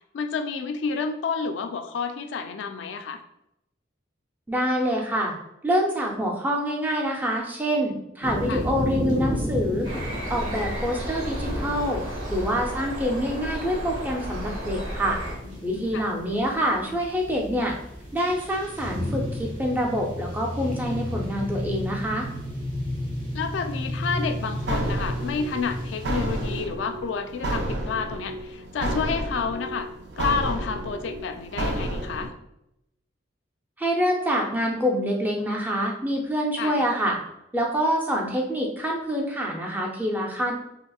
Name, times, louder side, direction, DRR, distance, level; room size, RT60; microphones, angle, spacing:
voice 1, 0.1-3.2 8.5-8.7 15.4-16.1 23.3-29.9 30.2-32.3 36.6-36.8, left 5 dB, 65° left, 7 dB, 0.3 m, -30 dB
voice 2, 4.5-5.3 5.6-9.9 10.3-12.0 12.3-15.2 15.6-17.8 18.1-22.3 33.8-37.2 37.5-40.5, equal, 10° right, -1 dB, 0.5 m, -26 dB
sound 1, 8.2-26.6, equal, 40° right, 1.1 m, -33 dB
sound 2, 9.8-15.3, equal, 80° right, 1.3 m, -33 dB
sound 3, 24.1-32.3, right 1 dB, 60° right, 0.5 m, -31 dB
5.2 x 2.0 x 2.3 m, 0.82 s
head